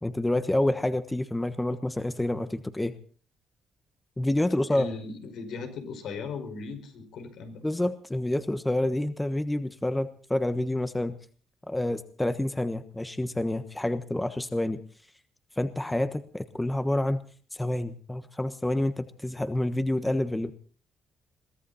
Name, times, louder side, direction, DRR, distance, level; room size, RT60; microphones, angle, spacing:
voice 1, 0.0-2.9 4.2-4.9 7.6-11.2 11.7-14.8 15.6-17.2 17.5-20.5, left 1 dB, 10° left, 10 dB, 1.2 m, -28 dB
voice 2, 4.7-7.6, left 4 dB, 75° left, 6 dB, 5.1 m, -38 dB
22.5 x 15.0 x 4.2 m, 0.42 s
cardioid pair, 90°, 0 cm